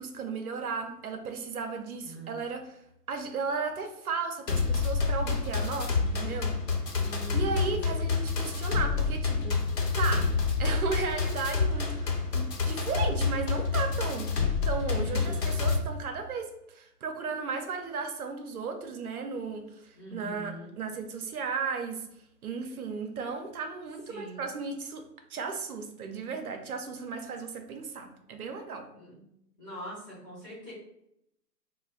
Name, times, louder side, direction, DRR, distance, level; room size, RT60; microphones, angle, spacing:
voice 1, 0.0-2.8 3.1-6.6 7.3-9.6 9.9-10.3 10.6-14.3 14.6-22.0 22.4-25.0 25.3-28.9, right 4 dB, 65° right, 5 dB, 0.6 m, -35 dB
voice 2, 2.0-2.4 7.0-8.1 14.9-15.7 20.0-20.7 24.1-24.5 28.9-29.2 29.6-30.7, right 1 dB, 10° left, -10 dB, 0.6 m, -44 dB
sound 1, 4.5-15.8, left 4 dB, 75° left, 0.9 m, -28 dB
2.3 x 2.2 x 3.5 m, 0.79 s
figure-of-eight pair, 125°, 48 cm